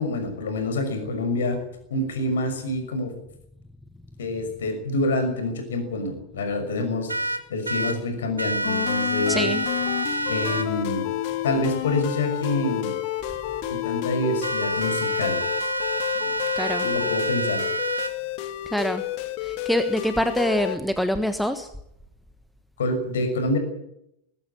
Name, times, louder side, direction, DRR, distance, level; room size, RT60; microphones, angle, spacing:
voice 1, 0.0-1.6 1.9-3.1 4.2-9.5 10.3-11.1 11.4-12.9 13.7-15.4 16.8-17.6 22.8-23.6, left 2 dB, 65° left, 7 dB, 6.1 m, -27 dB
sound 1, 7.1-8.0 8.4-10.7 14.4-18.1, right 2 dB, 80° right, 1.9 m, -28 dB
sound 2, 8.6-20.8, left 14 dB, 45° left, 2.1 m, -30 dB
voice 2, 9.3-9.7 16.6-16.9 18.7-19.0 19.4-21.7, equal, ahead, 9 dB, 1.4 m, -25 dB
21.0 x 14.5 x 9.9 m, 0.78 s
figure-of-eight pair, 90°, 0 cm